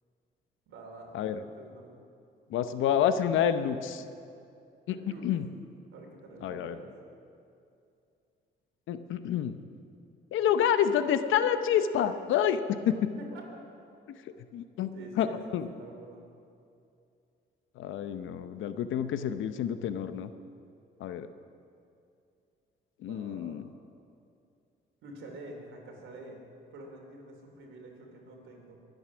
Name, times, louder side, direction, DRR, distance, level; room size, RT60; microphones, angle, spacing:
voice 1, 0.7-1.9 4.9-5.3 5.9-6.9 13.2-13.7 14.9-16.3 23.0-23.6 25.0-26.4 26.7-28.7, right 2 dB, 80° right, 1 dB, 3.0 m, -47 dB
voice 2, 2.5-4.0 4.9-5.0 5.2-5.5 6.4-6.8 8.9-9.6 10.3-13.1 14.1-14.2 14.5-14.9 15.2-15.3 15.5-15.7 17.8-20.3 21.0-21.3 23.0-23.7, left 9 dB, 80° left, 11 dB, 0.8 m, -28 dB
23.0 x 8.0 x 6.1 m, 2.5 s
cardioid pair, 90°, 20 cm